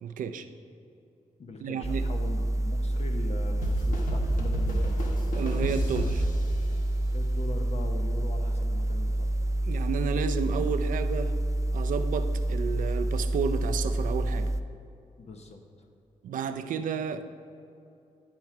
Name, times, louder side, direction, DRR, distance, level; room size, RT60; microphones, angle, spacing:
voice 1, 0.0-0.5 1.6-2.0 5.3-6.3 9.6-11.4 11.7-14.5 16.2-17.3, right 6 dB, 85° right, 10 dB, 0.4 m, -31 dB
voice 2, 1.4-5.1 7.1-9.3 15.2-15.6, left 3 dB, 55° left, 3 dB, 0.8 m, -41 dB
sound 1, 1.8-14.6, right 1 dB, 25° right, 0.4 m, -28 dB
sound 2, 3.6-7.2, equal, 80° left, 1.2 m, -33 dB
10.5 x 4.4 x 4.8 m, 2.6 s
cardioid pair, 65°, 13 cm